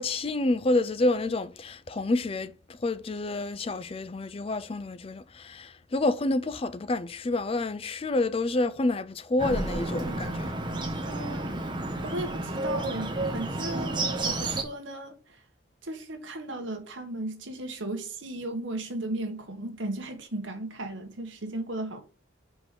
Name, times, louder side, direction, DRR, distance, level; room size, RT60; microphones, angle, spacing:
voice 1, 0.0-10.5, left 2 dB, 30° left, 0.4 m, -28 dB
Bird, 9.4-14.6, right 2 dB, 25° right, 0.9 m, -31 dB
voice 2, 11.0-11.5 12.0-15.4 15.8-22.0, right 2 dB, 70° right, 1.4 m, -36 dB
5.2 x 4.7 x 5.6 m
head